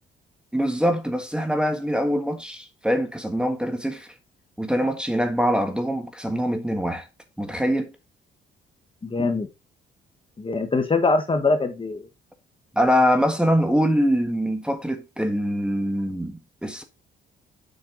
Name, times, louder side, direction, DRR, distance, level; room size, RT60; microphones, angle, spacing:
voice 1, 0.5-4.1 4.6-7.0 7.4-7.9 12.7-16.8, equal, 5° right, 1.6 m, -23 dB
voice 2, 9.0-9.5 10.4-12.1, left 3 dB, 25° left, 1.5 m, -23 dB
7.9 x 5.8 x 4.0 m
cardioid pair, 90°, 20 cm